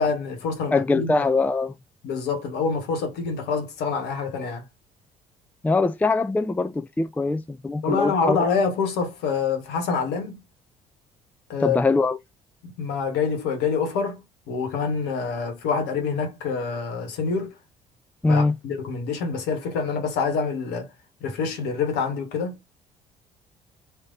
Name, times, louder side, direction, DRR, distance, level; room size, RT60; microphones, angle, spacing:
voice 1, 0.0-1.1 2.0-4.6 7.8-10.4 11.5-11.8 12.6-14.2 14.5-17.5 18.3-20.9 21.2-22.5, left 5 dB, 65° left, 1.3 m, -26 dB
voice 2, 0.7-1.7 5.6-8.5 11.6-12.2 18.2-18.6, left 3 dB, 10° left, 0.4 m, -22 dB
3.2 x 2.8 x 2.5 m
figure-of-eight pair, 55°, 19 cm